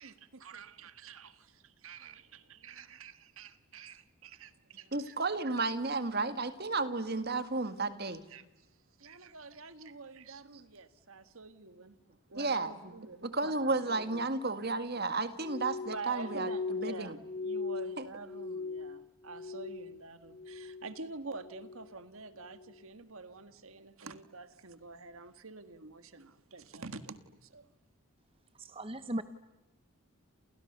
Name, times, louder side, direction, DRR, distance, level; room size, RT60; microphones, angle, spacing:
voice 1, 0.0-5.1 8.3-8.4 9.0-11.9 12.3-14.2 15.9-27.7, right 3 dB, 75° right, 11 dB, 1.7 m, -47 dB
voice 2, 4.9-8.2 12.3-17.2 18.0-18.1, right 3 dB, 45° right, 10 dB, 2.0 m, -33 dB
Glass, 15.4-20.0 20.3-20.9 21.3-21.9 22.4-22.7, left 4 dB, 20° left, 1.5 m, -39 dB
voice 3, 28.6-29.2, right 1 dB, 25° right, 11 dB, 0.9 m, -37 dB
29.5 x 29.0 x 6.9 m, 1.0 s
head